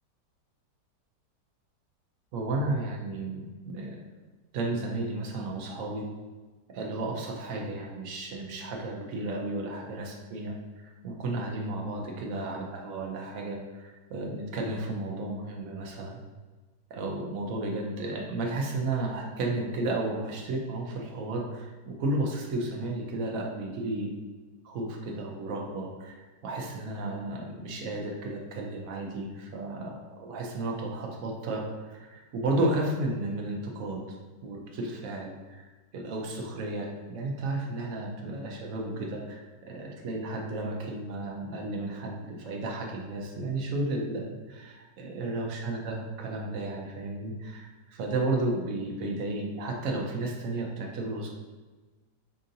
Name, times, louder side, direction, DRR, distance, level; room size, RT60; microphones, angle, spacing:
voice 1, 2.3-4.0 4.5-6.1 6.7-16.2 16.9-24.2 24.6-34.0 34.4-51.3, right 2 dB, 60° right, 0 dB, 1.0 m, -33 dB
5.5 x 2.6 x 2.6 m, 1.3 s
omnidirectional pair, 1.8 m